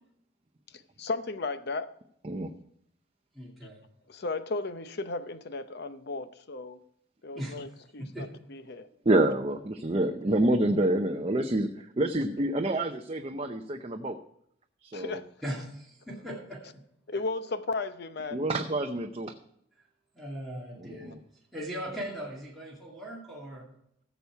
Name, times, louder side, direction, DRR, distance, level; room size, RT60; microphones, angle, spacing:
voice 1, 0.7-1.9 4.1-6.8 7.2-8.9 14.9-15.3 17.1-18.5, left 3 dB, 55° left, 0.7 m, -35 dB
voice 2, 3.3-3.8 7.3-7.6 8.0-8.3 15.4-16.6 17.1-17.2 20.1-21.1 21.5-23.7, equal, ahead, 2.3 m, -39 dB
voice 3, 9.1-14.2 14.8-15.2 18.3-19.3 20.8-21.2, right 1 dB, 30° right, 0.6 m, -27 dB
16.0 x 7.1 x 4.6 m
head